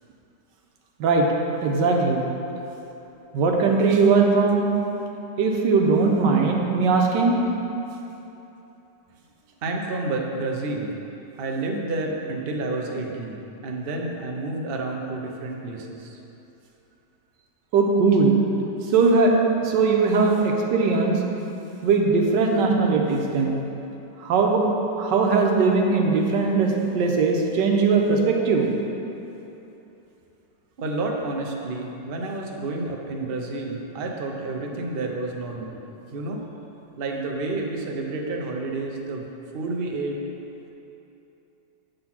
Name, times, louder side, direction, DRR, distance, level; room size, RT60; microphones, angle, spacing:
voice 1, 1.6-2.2 3.3-4.6 5.4-7.4 17.7-18.4 18.9-19.4 19.6-21.2 21.8-23.6 24.2-24.6 25.0-28.7, right 4 dB, 85° right, 1 dB, 1.4 m, -20 dB
voice 2, 9.6-10.9 11.4-16.2 30.8-36.4 36.9-40.2, right 2 dB, 55° right, 0 dB, 0.6 m, -30 dB
7.8 x 3.9 x 5.9 m, 3.0 s
omnidirectional pair, 1.9 m